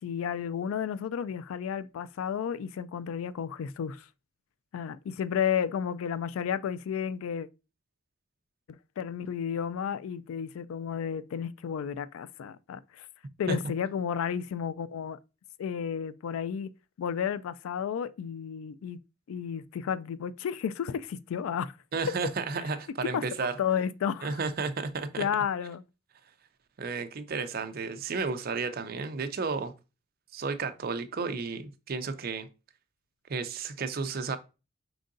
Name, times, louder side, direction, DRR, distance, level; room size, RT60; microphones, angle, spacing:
voice 1, 0.0-4.1 4.7-7.5 9.0-13.1 13.4-15.2 15.6-16.7 17.0-19.0 19.3-21.7 23.0-23.2 23.6-24.4 25.2-25.8, left 8 dB, 85° left, 0.3 m, -32 dB
voice 2, 21.9-23.5 24.2-25.3 26.8-29.7 30.3-32.5 33.3-34.4, right 4 dB, 45° right, 0.5 m, -32 dB
4.5 x 3.9 x 2.5 m
head